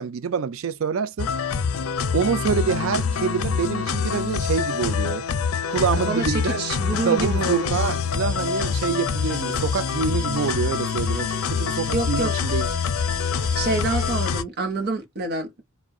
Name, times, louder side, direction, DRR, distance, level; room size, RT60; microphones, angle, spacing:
voice 1, 0.0-1.3 2.1-5.2 5.7-6.7 7.0-12.7, right 6 dB, 70° right, 0.4 m, -26 dB
sound 1, 1.2-14.4, left 6 dB, 85° left, 0.5 m, -25 dB
voice 2, 6.1-7.8 11.9-12.3 13.5-15.6, right 2 dB, 55° right, 0.7 m, -27 dB
3.5 x 2.1 x 2.2 m
head